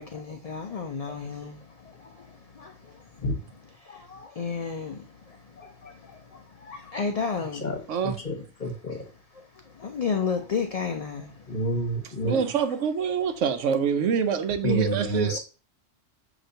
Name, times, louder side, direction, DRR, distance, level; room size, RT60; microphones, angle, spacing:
voice 1, 0.0-7.7 8.6-9.0 9.3-11.7 12.2-12.4, left 5 dB, 60° left, 0.4 m, -34 dB
voice 2, 5.6-5.9 7.6-7.8 8.0-9.0 11.5-12.4 14.6-15.4, equal, 40° left, 1.2 m, -29 dB
voice 3, 12.2-15.4, right 7 dB, 80° right, 1.0 m, -25 dB
6.6 x 2.9 x 2.7 m
omnidirectional pair, 1.3 m